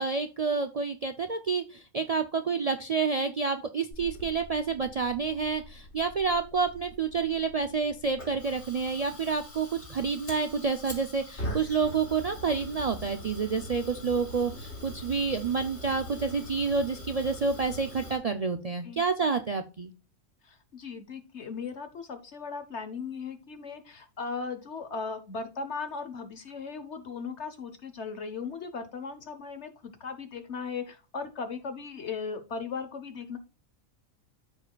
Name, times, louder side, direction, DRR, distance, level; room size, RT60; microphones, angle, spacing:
voice 1, 0.0-19.9, right 5 dB, 80° right, 7 dB, 0.3 m, -29 dB
Fire, 3.9-18.2, left 1 dB, 75° left, 3.2 m, -43 dB
voice 2, 20.4-33.4, left 5 dB, 55° left, 8 dB, 1.2 m, -37 dB
13.5 x 4.9 x 2.3 m, 0.32 s
omnidirectional pair, 1.4 m